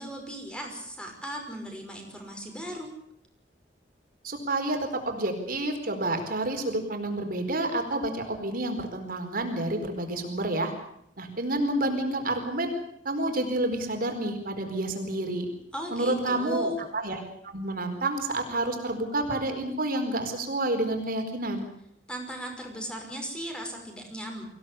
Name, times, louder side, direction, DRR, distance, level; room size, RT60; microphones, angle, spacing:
voice 1, 0.0-2.9 15.7-16.8 22.1-24.4, equal, 5° left, 2 dB, 5.7 m, -37 dB
voice 2, 4.2-10.7 11.2-12.7 13.0-15.5 15.9-17.2 17.5-21.7, right 1 dB, 55° right, 5 dB, 4.5 m, -29 dB
24.0 x 17.0 x 8.5 m, 0.73 s
head